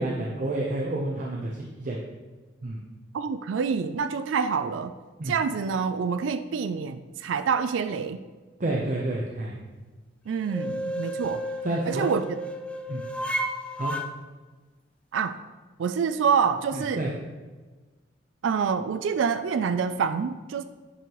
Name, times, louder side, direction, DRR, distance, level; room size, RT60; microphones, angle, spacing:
voice 1, 0.0-1.5 1.8-2.0 2.6-2.8 5.2-5.3 8.6-9.6 11.6-12.1 12.9-13.0 13.8-13.9 16.7-17.1, right 2 dB, 45° right, -2 dB, 0.7 m, -29 dB
voice 2, 3.1-4.9 5.3-8.2 10.3-11.5 11.8-12.4 15.1-15.4 15.8-17.0 18.4-20.6, right 6 dB, 90° right, 10 dB, 0.3 m, -27 dB
sound 1, 10.5-14.1, equal, 5° left, 0.3 m, -32 dB
8.4 x 5.5 x 3.0 m, 1.3 s
head